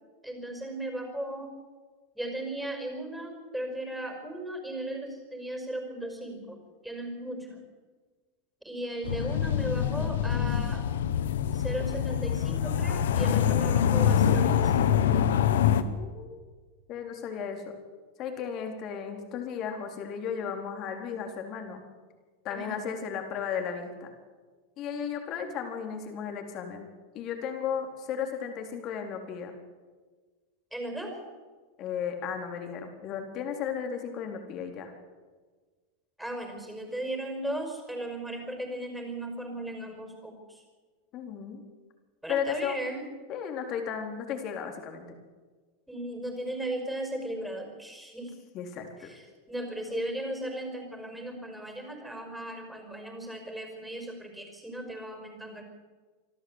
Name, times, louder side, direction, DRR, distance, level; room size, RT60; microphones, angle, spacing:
voice 1, 0.2-1.5 2.2-7.6 8.6-10.9 11.5-15.0 22.5-22.8 30.7-31.2 36.2-40.6 42.2-43.1 45.9-48.4 49.0-55.6, right 1 dB, 5° right, 4 dB, 5.4 m, -36 dB
sound 1, 9.0-15.8, left 9 dB, 75° left, 1.2 m, -25 dB
voice 2, 15.8-16.4 16.9-17.7 18.2-21.8 22.4-24.1 24.8-26.9 27.1-29.5 31.8-34.9 41.1-41.6 42.3-42.8 43.3-45.0 48.5-49.1, left 7 dB, 45° left, 4 dB, 4.1 m, -35 dB
26.0 x 13.0 x 8.2 m, 1.4 s
hypercardioid pair, 105°, 0 cm